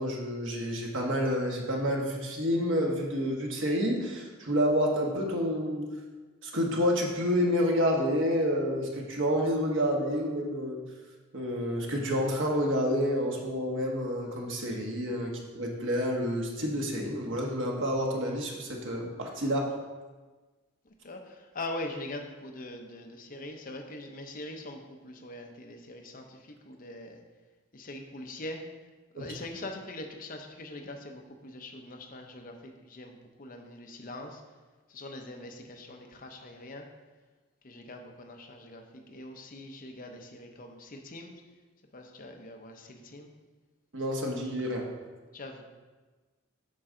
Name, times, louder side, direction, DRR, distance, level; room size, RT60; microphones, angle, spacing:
voice 1, 0.0-5.9 6.4-10.8 11.3-19.7 29.2-29.3 43.9-44.9, equal, 60° right, 0 dB, 1.3 m, -29 dB
voice 2, 20.8-27.2 27.7-28.7 29.1-34.4 34.9-36.9 37.6-41.3 41.9-43.3 45.3-45.6, left 2 dB, 40° left, 4 dB, 0.8 m, -42 dB
8.6 x 5.9 x 3.8 m, 1.3 s
head